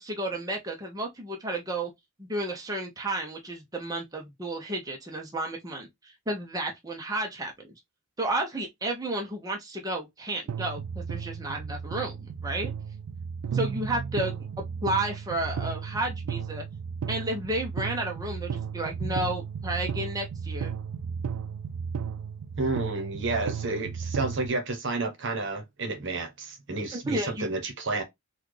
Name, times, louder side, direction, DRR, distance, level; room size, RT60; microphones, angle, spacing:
voice 1, 0.0-1.9 2.2-7.5 8.2-12.7 13.5-16.6 17.1-20.7 26.9-27.5, right 1 dB, 15° right, 0.7 m, -32 dB
sound 1, 10.5-24.5, right 6 dB, 80° right, 0.3 m, -34 dB
voice 2, 22.6-28.0, right 3 dB, 55° right, 1.0 m, -30 dB
4.1 x 2.3 x 3.2 m
head